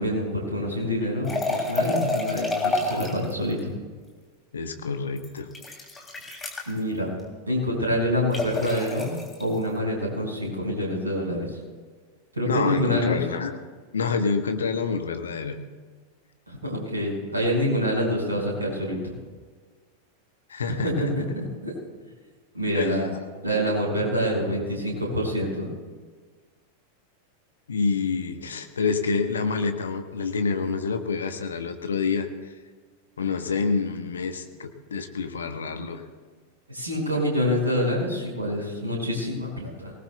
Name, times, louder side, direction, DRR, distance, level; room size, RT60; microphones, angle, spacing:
voice 1, 0.0-3.7 6.7-7.1 7.5-9.1 9.4-11.6 12.3-13.2 16.5-19.1 20.8-21.7 22.5-23.1 23.4-25.7 36.7-39.9, equal, 80° right, -2 dB, 5.5 m, -26 dB
sound 1, 1.2-3.3 5.2-6.7 8.3-9.4, left 2 dB, 15° left, 3.0 m, -28 dB
voice 2, 4.5-5.5 12.5-13.6 13.9-15.6 20.5-21.1 22.7-23.0 27.7-32.3 33.2-36.0, left 5 dB, 70° left, 8 dB, 1.1 m, -27 dB
23.5 x 18.5 x 2.3 m, 1.5 s
figure-of-eight pair, 90°, 0 cm